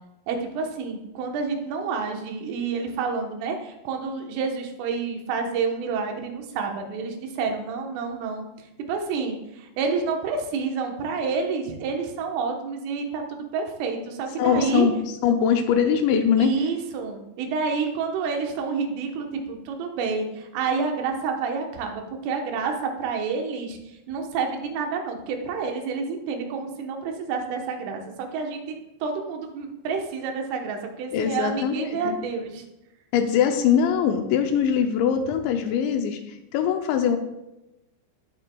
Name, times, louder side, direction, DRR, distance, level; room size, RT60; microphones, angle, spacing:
voice 1, 0.3-8.5 8.9-14.9 16.4-28.6 29.0-32.6, right 5 dB, 90° right, 3 dB, 3.7 m, -29 dB
voice 2, 14.4-14.9 15.2-16.5 31.1-32.2 33.1-37.2, left 8 dB, 80° left, 6 dB, 2.7 m, -22 dB
17.5 x 7.6 x 2.3 m, 0.92 s
omnidirectional pair, 5.5 m